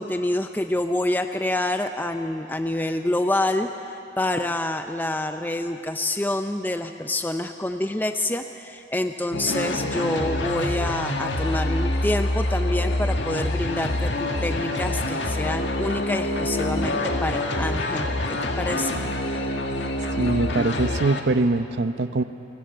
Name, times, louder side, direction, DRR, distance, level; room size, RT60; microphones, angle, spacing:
voice 1, 0.0-19.0, left 1 dB, 10° left, 7 dB, 0.5 m, -27 dB
sound 1, 9.3-21.2, left 1 dB, 80° left, 1.7 m, -26 dB
voice 2, 20.2-22.2, right 2 dB, 70° right, 12 dB, 0.7 m, -22 dB
28.5 x 14.5 x 7.7 m, 2.8 s
head